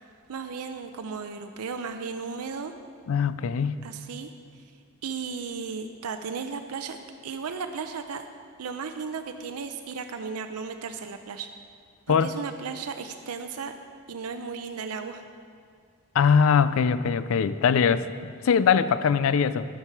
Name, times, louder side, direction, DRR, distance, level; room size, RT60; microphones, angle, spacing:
voice 1, 0.3-2.7 3.8-4.3 5.0-7.0 7.2-8.2 8.6-11.5 12.1-13.7 14.1-15.2, right 5 dB, 85° right, 7 dB, 0.5 m, -35 dB
voice 2, 3.1-3.8 12.1-12.3 16.1-19.7, left 6 dB, 65° left, 14 dB, 0.4 m, -22 dB
11.5 x 8.8 x 4.6 m, 2.2 s
head